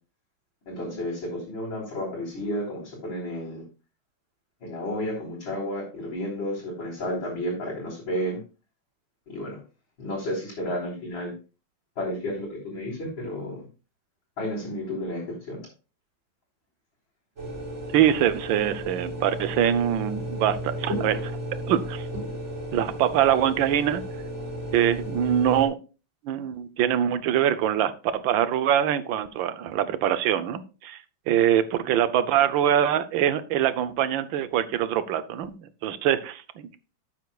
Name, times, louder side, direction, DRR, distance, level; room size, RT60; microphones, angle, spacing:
voice 1, 0.7-3.6 4.6-8.4 9.3-9.6 10.0-11.3 12.0-13.6 14.4-15.6, left 1 dB, 80° left, -8 dB, 4.4 m, -32 dB
sound 1, 17.4-25.7, equal, 35° right, 4.2 m, -34 dB
voice 2, 17.9-21.3 21.7-22.1 22.7-24.0 24.7-25.7 26.2-31.0 31.3-35.6 35.8-36.7, right 10 dB, 80° right, 13 dB, 1.5 m, -24 dB
12.5 x 8.2 x 2.4 m, 0.33 s
omnidirectional pair, 2.1 m